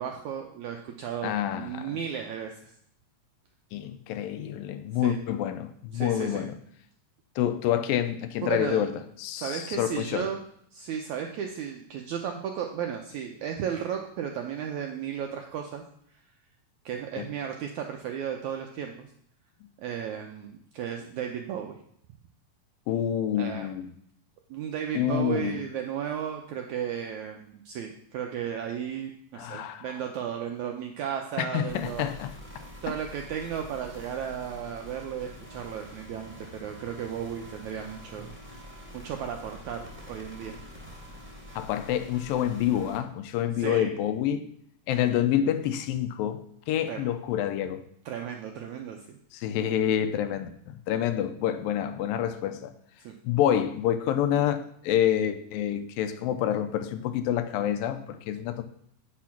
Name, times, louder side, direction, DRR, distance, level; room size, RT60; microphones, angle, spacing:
voice 1, 0.0-2.7 5.0-5.2 5.9-6.5 8.4-8.9 9.4-10.4 10.7-15.8 16.8-19.1 19.8-21.8 23.4-23.7 24.5-32.0 32.8-38.3 38.9-40.6 43.6-43.9 46.9-47.0 48.0-49.2 53.0-53.1, right 8 dB, 85° right, 1.7 m, -34 dB
voice 2, 1.2-2.0 3.7-6.5 7.4-8.9 9.2-10.3 17.2-17.3 22.9-24.0 24.9-25.6 29.4-29.9 31.4-32.3 41.6-44.5 44.9-46.4 46.7-47.8 49.3-52.7 53.2-58.6, left 10 dB, 80° left, 2.3 m, -27 dB
sound 1, 31.7-43.0, equal, 10° right, 0.7 m, -46 dB
8.4 x 6.6 x 5.8 m
omnidirectional pair, 4.2 m